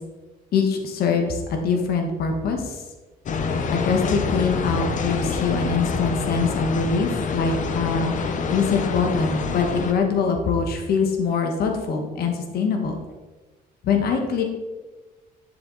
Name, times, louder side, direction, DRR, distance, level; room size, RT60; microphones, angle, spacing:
voice 1, 0.5-2.8 3.7-8.1 8.5-13.0 13.8-14.4, left 5 dB, 65° left, 4 dB, 1.7 m, -23 dB
sound 1, 3.3-9.9, left 4 dB, 50° left, 1.1 m, -26 dB
10.5 x 7.2 x 4.2 m, 1.2 s
cardioid pair, 110°, 17 cm